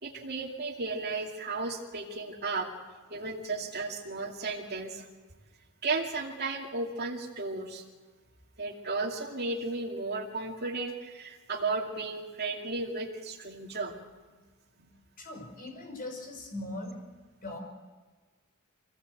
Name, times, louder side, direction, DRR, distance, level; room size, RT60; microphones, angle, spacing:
voice 1, 0.0-2.7 3.1-5.0 5.8-7.8 8.6-14.0 14.3-14.4 14.8-14.9, right 3 dB, 50° right, -3 dB, 2.6 m, -34 dB
voice 2, 15.2-17.0 17.4-17.6, left 2 dB, 45° left, 3 dB, 5.6 m, -40 dB
25.0 x 17.5 x 8.1 m, 1.4 s
head